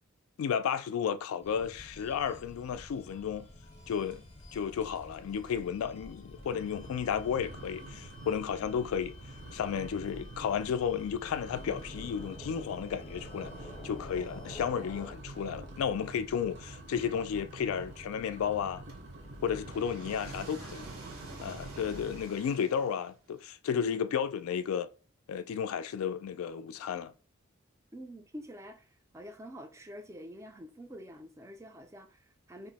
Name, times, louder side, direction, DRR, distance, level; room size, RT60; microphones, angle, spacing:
voice 1, 0.4-3.5 3.9-4.2 4.5-9.1 9.5-13.5 13.8-18.8 19.4-20.9 21.4-24.9 25.3-27.1, left 7 dB, 80° left, 0.3 m, -33 dB
sound 1, 1.4-15.1, left 1 dB, 25° left, 0.6 m, -49 dB
sound 2, 4.1-4.5 4.8-5.2 5.6-5.7 6.3-22.4, right 2 dB, 55° right, 0.6 m, -47 dB
sound 3, 18.9-23.3, right 3 dB, 85° right, 0.9 m, -49 dB
voice 2, 27.9-28.9 29.1-32.7, equal, 15° right, 0.3 m, -47 dB
2.5 x 2.0 x 3.9 m
head